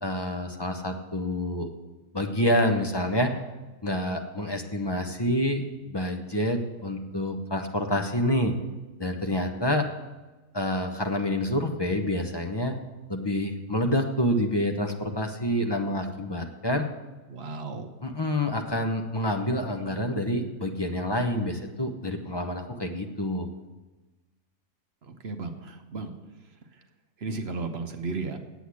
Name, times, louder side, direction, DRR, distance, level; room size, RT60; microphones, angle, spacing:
voice 1, 0.0-1.7 2.1-3.3 3.8-8.6 9.0-9.9 10.5-12.8 13.1-16.8 18.0-23.5, left 1 dB, 20° left, 4 dB, 0.7 m, -27 dB
voice 2, 17.3-17.9 25.0-26.1 27.2-28.4, right 3 dB, 50° right, 6 dB, 1.0 m, -34 dB
8.2 x 7.9 x 8.4 m, 1.1 s
omnidirectional pair, 1.5 m